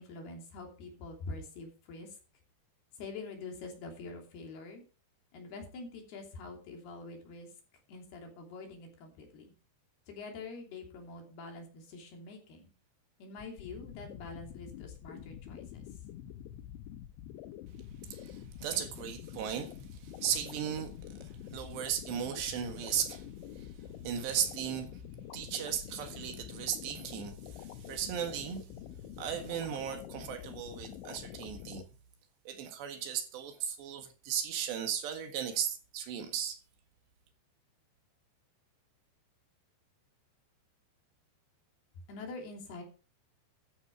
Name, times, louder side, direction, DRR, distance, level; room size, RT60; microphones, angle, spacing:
voice 1, 0.0-2.2 2.9-4.8 5.3-7.5 7.9-9.5 10.1-12.7 13.2-15.9 42.1-42.8, left 3 dB, 60° left, 4.8 m, -45 dB
sound 1, 13.4-31.9, left 11 dB, 90° left, 3.1 m, -47 dB
voice 2, 18.1-20.9 21.2-23.3 23.6-23.7 24.0-24.9 25.3-28.7 29.2-31.8 32.5-36.6, right 9 dB, 70° right, 3.7 m, -36 dB
13.5 x 9.5 x 4.7 m
omnidirectional pair, 5.2 m